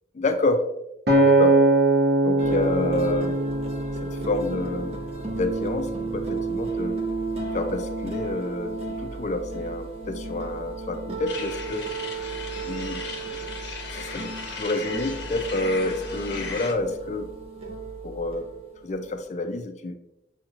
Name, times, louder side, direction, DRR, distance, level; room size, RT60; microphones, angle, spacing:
voice 1, 0.1-0.6 1.1-1.6 2.2-3.4 4.0-4.9 5.3-7.0 7.5-12.3 12.6-13.0 13.3-13.4 13.9-17.3 18.0-18.5 18.8-20.0, left 2 dB, 40° left, 6 dB, 0.4 m, -28 dB
Acoustic guitar, 1.1-5.4 6.0-6.3, right 2 dB, 60° right, 0.9 m, -22 dB
sound 1, 2.4-19.2, right 3 dB, 35° right, 0.5 m, -34 dB
sound 2, 11.3-16.7, left 4 dB, 60° left, 0.8 m, -37 dB
6.2 x 3.0 x 2.4 m, 0.86 s
head